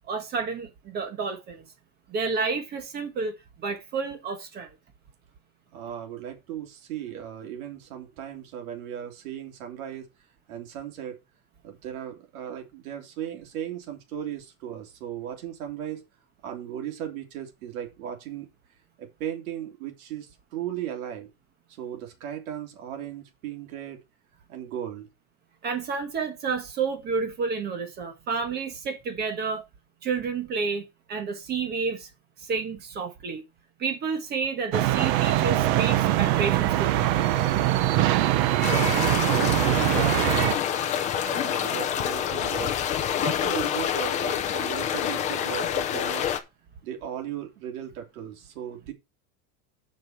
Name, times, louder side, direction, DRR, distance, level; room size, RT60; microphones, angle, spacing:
voice 1, 0.0-1.6 2.1-4.7 25.6-29.6 30.0-32.1 32.4-33.4 33.8-37.1, right 5 dB, 20° right, 1.4 m, -30 dB
voice 2, 5.7-10.1 10.5-11.2 11.6-16.0 16.4-18.5 19.0-21.3 21.8-24.0 24.5-25.1 38.4-40.6 41.2-42.8 43.2-46.3 46.8-48.9, right 10 dB, 70° right, 3.2 m, -36 dB
sound 1, 34.7-40.5, right 14 dB, 40° right, 0.8 m, -22 dB
sound 2, 38.6-46.4, left 9 dB, 15° left, 0.6 m, -27 dB
7.8 x 5.3 x 5.8 m
supercardioid pair, 175°, 43 cm